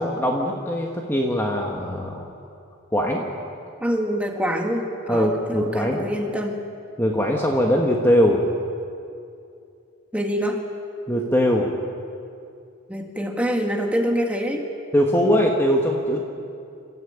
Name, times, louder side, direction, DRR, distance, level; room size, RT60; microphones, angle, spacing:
voice 1, 0.0-2.2 2.9-3.2 5.1-6.0 7.0-8.4 11.1-11.7 14.9-16.3, equal, 10° left, 0 dB, 1.4 m, -21 dB
voice 2, 3.8-6.6 10.1-10.6 12.9-14.7, equal, 5° right, 1 dB, 1.9 m, -25 dB
27.5 x 13.5 x 8.8 m, 2.5 s
head